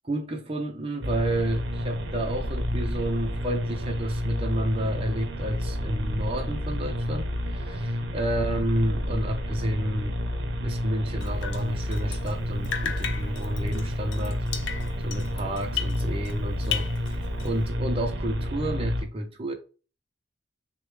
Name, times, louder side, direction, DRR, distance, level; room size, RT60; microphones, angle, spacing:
voice 1, 0.0-10.2 10.5-19.5, right 1 dB, 30° right, 0.5 m, -31 dB
sound 1, 1.0-19.0, equal, 70° right, 0.6 m, -30 dB
Drip, 11.2-12.4 12.6-16.4 16.6-17.7, left 8 dB, 75° left, 0.5 m, -35 dB
6.5 x 2.2 x 3.2 m
head